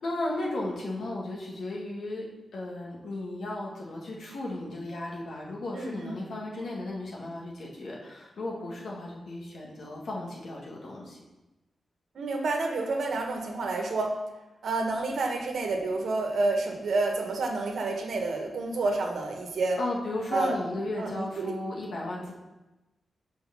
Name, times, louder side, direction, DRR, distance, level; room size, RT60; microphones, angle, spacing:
voice 1, 0.0-11.2 19.8-22.3, left 2 dB, 75° left, -2 dB, 1.8 m, -35 dB
voice 2, 5.7-6.2 12.1-14.1 14.6-19.8 20.3-20.6 21.0-21.5, right 3 dB, 75° right, 3 dB, 1.2 m, -29 dB
6.1 x 4.7 x 5.9 m, 1.0 s
wide cardioid pair, 110°, 0 cm